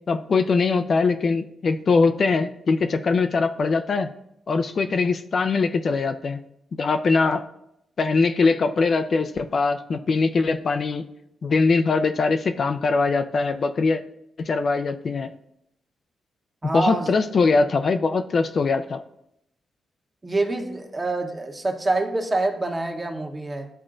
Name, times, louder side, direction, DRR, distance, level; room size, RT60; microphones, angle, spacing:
voice 1, 0.1-4.1 4.5-6.4 6.7-7.4 8.0-11.0 11.4-14.0 14.5-15.3 16.7-19.0, left 4 dB, 55° left, 7 dB, 0.4 m, -22 dB
voice 2, 16.6-17.1 20.2-23.7, right 2 dB, 30° right, 3 dB, 1.1 m, -26 dB
11.0 x 3.7 x 2.5 m, 0.79 s
supercardioid pair, 50°, 0 cm